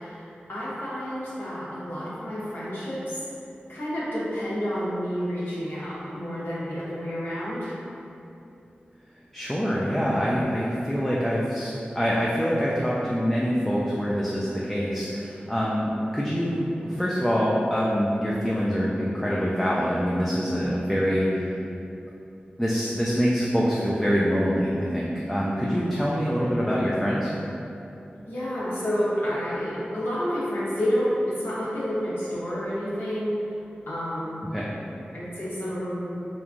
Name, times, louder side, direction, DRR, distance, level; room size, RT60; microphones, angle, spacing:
voice 1, 0.0-3.2 3.7-7.7 9.7-10.0 26.3-27.0 28.3-33.4 33.9-34.4 35.1-36.1, equal, 70° left, -9 dB, 0.9 m, -30 dB
voice 2, 9.3-21.4 22.6-27.3 34.5-34.7, equal, 5° left, -6 dB, 0.3 m, -25 dB
3.1 x 2.3 x 2.5 m, 2.8 s
cardioid pair, 45°, 4 cm